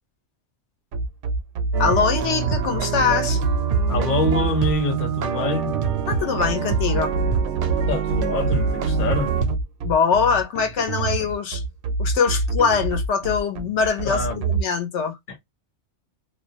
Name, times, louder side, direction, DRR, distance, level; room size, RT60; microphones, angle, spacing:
sound 1, 0.9-14.6, right 3 dB, 60° right, 0.6 m, -26 dB
sound 2, 1.7-9.6, right 7 dB, 90° right, 0.9 m, -26 dB
voice 1, 1.8-3.4 6.1-7.1 9.8-11.6 12.0-15.2, left 6 dB, 75° left, 1.0 m, -22 dB
voice 2, 3.9-5.7 7.9-9.3 14.0-14.3 15.3-15.4, left 3 dB, 50° left, 1.0 m, -25 dB
2.4 x 2.1 x 2.6 m
omnidirectional pair, 1.2 m